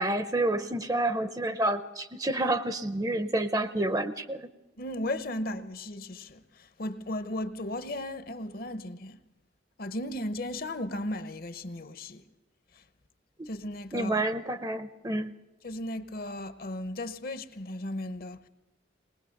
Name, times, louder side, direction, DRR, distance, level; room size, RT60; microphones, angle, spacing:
voice 1, 0.0-4.5 13.9-15.3, right 1 dB, 20° right, 0.6 m, -29 dB
voice 2, 4.8-9.2 9.8-12.2 12.8-12.9 13.5-14.2 15.6-18.5, left 1 dB, 50° left, 0.8 m, -36 dB
20.5 x 19.5 x 6.5 m
head